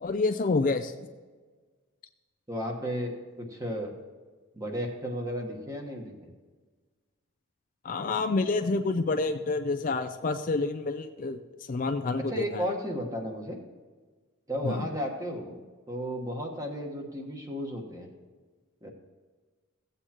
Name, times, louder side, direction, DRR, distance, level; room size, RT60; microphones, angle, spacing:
voice 1, 0.0-0.9 7.8-11.4 11.7-12.6 14.6-14.9, left 3 dB, 40° left, 6 dB, 0.4 m, -28 dB
voice 2, 2.5-3.9 4.5-6.3 12.1-13.6 14.5-15.6 15.9-18.1 18.8-18.9, equal, 15° right, 1 dB, 1.3 m, -34 dB
16.0 x 8.1 x 2.9 m, 1.4 s
head